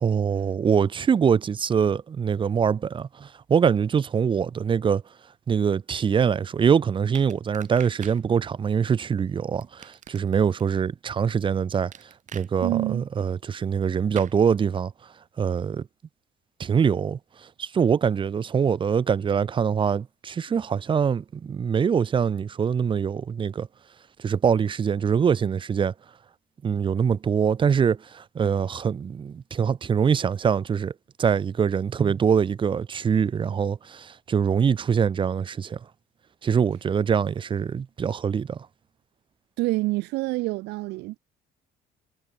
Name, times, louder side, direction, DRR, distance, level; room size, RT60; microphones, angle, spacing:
voice 1, 0.0-5.0 5.5-11.9 12.3-14.9 15.4-15.9 16.6-23.7 24.2-25.9 26.6-30.9 31.2-35.8 36.4-38.7, right 7 dB, 30° right, 0.6 m, -24 dB
sound 1, 7.1-8.2 9.6-10.6 11.9-12.5 14.1-14.4, right 9 dB, 45° right, 1.4 m, -43 dB
voice 2, 12.6-13.0 39.6-41.2, right 21 dB, 90° right, 1.7 m, -27 dB
cardioid pair, 110°, 17 cm